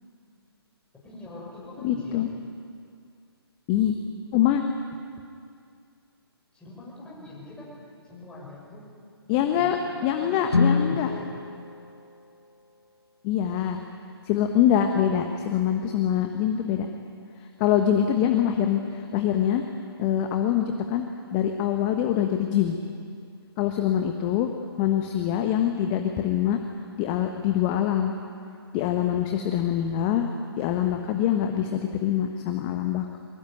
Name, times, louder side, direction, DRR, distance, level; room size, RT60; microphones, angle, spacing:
voice 1, 1.0-2.2 6.5-7.7 8.0-8.9 9.3-9.7 10.0-11.3, left 2 dB, 5° left, -5 dB, 7.1 m, -42 dB
voice 2, 1.8-2.3 3.7-4.0 4.3-4.6 9.3-9.8 10.0-11.1 13.2-13.8 14.2-16.9 17.6-19.6 20.0-21.0 21.3-22.8 23.6-24.5 24.8-26.6 27.0-28.1 28.7-30.3 30.6-33.2, left 10 dB, 25° left, 5 dB, 1.4 m, -24 dB
Guitar, 10.5-13.1, left 4 dB, 80° left, 1.0 m, -27 dB
23.5 x 21.0 x 9.2 m, 2.3 s
figure-of-eight pair, 135°, 14 cm